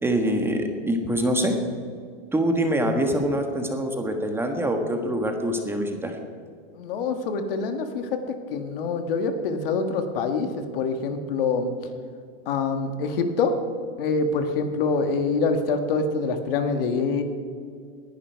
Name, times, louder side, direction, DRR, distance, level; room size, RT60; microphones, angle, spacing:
voice 1, 0.0-1.6 2.3-6.2, right 1 dB, 10° right, 4 dB, 1.4 m, -24 dB
voice 2, 6.7-8.2 8.5-11.7 12.5-13.5 14.0-17.2, left 4 dB, 65° left, 7 dB, 1.8 m, -25 dB
20.0 x 11.0 x 4.7 m, 2.2 s
supercardioid pair, 140°, 30 cm